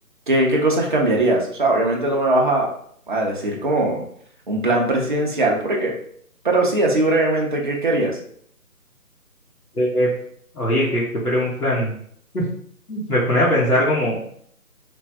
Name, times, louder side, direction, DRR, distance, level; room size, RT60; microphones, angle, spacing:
voice 1, 0.3-2.7 3.1-4.0 4.5-5.9 6.4-8.2, right 2 dB, 35° right, -1 dB, 0.6 m, -20 dB
voice 2, 9.7-10.1 10.5-11.9 12.3-12.4 12.9-14.2, equal, 85° left, -6 dB, 1.4 m, -20 dB
3.3 x 2.5 x 3.2 m, 0.63 s
figure-of-eight pair, 155°, 44 cm